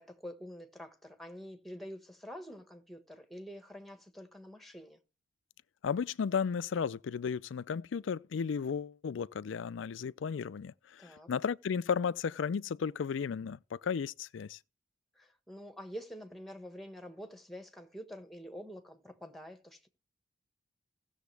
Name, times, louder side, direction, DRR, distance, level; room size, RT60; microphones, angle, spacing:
voice 1, 0.0-5.0 11.0-11.3 15.1-19.9, equal, ahead, 1.5 m, -47 dB
voice 2, 5.8-14.6, left 6 dB, 75° left, 0.4 m, -34 dB
16.5 x 7.1 x 3.4 m
head